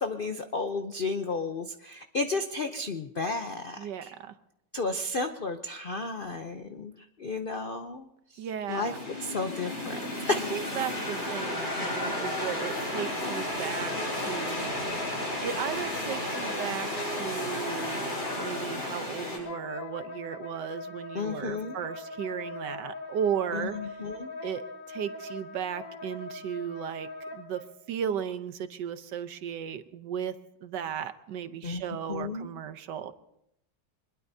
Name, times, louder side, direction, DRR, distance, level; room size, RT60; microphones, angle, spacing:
voice 1, 0.0-4.1 4.7-6.9 7.2-8.1 8.7-8.9 9.2-10.0 10.3-10.5 12.9-13.5 21.1-21.8 23.5-24.3 31.6-31.8 32.1-32.5, left 3 dB, 60° left, 7 dB, 0.5 m, -32 dB
voice 2, 3.8-4.3 8.4-9.0 10.3-23.9 24.4-24.6 24.9-27.6 27.9-30.3 30.6-33.1, right 8 dB, 70° right, 11 dB, 1.4 m, -35 dB
sound 1, 8.7-19.4, left 1 dB, 30° left, 8.3 m, -33 dB
Wind instrument woodwind instrument, 19.4-27.6, left 3 dB, 85° left, 2.9 m, -41 dB
24.5 x 21.0 x 2.7 m, 0.78 s
omnidirectional pair, 2.0 m